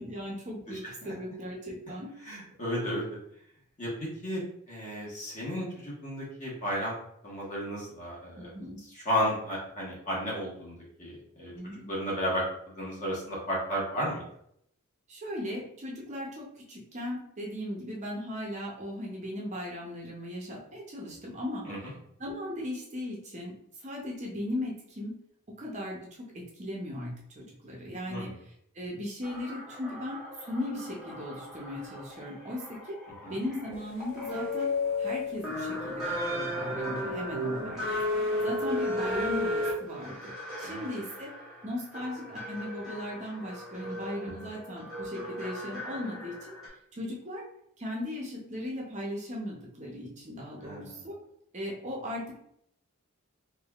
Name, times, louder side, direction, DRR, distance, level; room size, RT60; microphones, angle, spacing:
voice 1, 0.0-2.1 8.4-8.8 11.5-11.9 15.1-21.7 22.2-25.1 25.6-33.0 33.3-34.7 35.0-38.0 38.4-40.3 40.6-41.3 41.6-46.5 46.9-47.4 47.8-51.2 51.5-52.4, left 1 dB, 30° right, -2 dB, 0.6 m, -37 dB
voice 2, 2.2-3.1 3.8-4.4 4.7-6.9 7.2-8.5 8.9-11.5 11.9-14.2 21.6-21.8 28.1-28.3 33.2-33.4 37.3-37.7 38.4-38.5 40.6-40.8 44.4-44.5 50.6-51.0, equal, 35° left, -4 dB, 1.2 m, -33 dB
sound 1, 29.2-46.7, left 1 dB, ahead, 1.1 m, -35 dB
3.5 x 3.4 x 2.4 m, 0.72 s
head